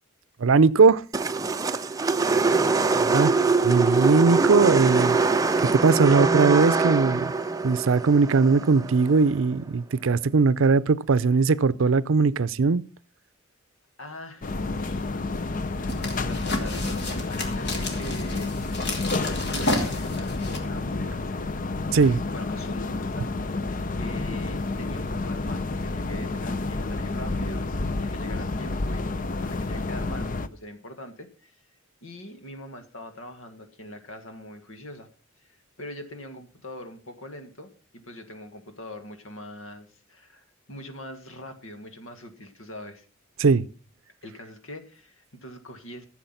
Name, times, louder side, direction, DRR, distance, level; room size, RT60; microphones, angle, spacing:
voice 1, 0.4-1.0 3.1-3.3 3.7-5.2 5.7-7.3 7.6-12.8 21.9-22.2 43.4-43.7, right 4 dB, 75° right, 0.5 m, -20 dB
sound 1, 1.1-9.4, right 4 dB, 15° right, 0.5 m, -23 dB
voice 2, 1.7-3.5 14.0-15.1 15.4-18.5 19.3-21.5 22.3-23.3 24.0-31.6 32.0-35.1 35.4-43.1 44.2-46.0, left 1 dB, 85° left, 1.8 m, -42 dB
sound 2, 14.4-30.5, left 3 dB, 40° left, 0.6 m, -30 dB
sound 3, 15.5-20.6, left 1 dB, 55° left, 2.6 m, -32 dB
14.5 x 7.2 x 5.7 m
head